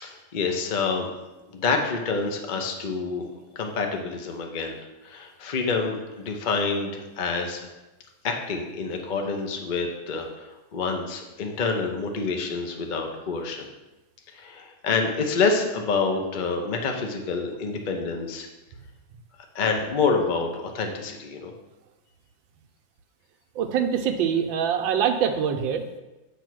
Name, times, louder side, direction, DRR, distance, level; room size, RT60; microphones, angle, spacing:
voice 1, 0.0-1.1 1.5-3.3 3.5-4.7 5.0-7.7 8.2-13.7 14.3-18.5 19.5-21.5, left 4 dB, 50° left, 3 dB, 0.5 m, -27 dB
voice 2, 23.5-25.8, right 8 dB, 80° right, 5 dB, 1.4 m, -24 dB
8.4 x 3.5 x 6.1 m, 1.0 s
omnidirectional pair, 2.1 m